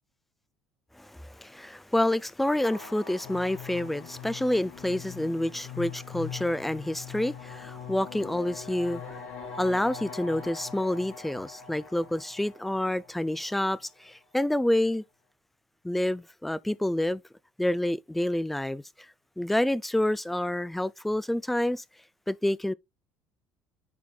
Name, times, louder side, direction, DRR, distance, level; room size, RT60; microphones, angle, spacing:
voice 1, 1.0-9.3 9.6-15.0 15.8-17.2 17.6-18.8 19.4-21.8 22.3-22.7, left 1 dB, 5° left, 0.4 m, -28 dB
sound 1, 2.6-13.8, left 6 dB, 75° left, 2.7 m, -42 dB
10.5 x 4.1 x 2.4 m
supercardioid pair, 105°, 3 cm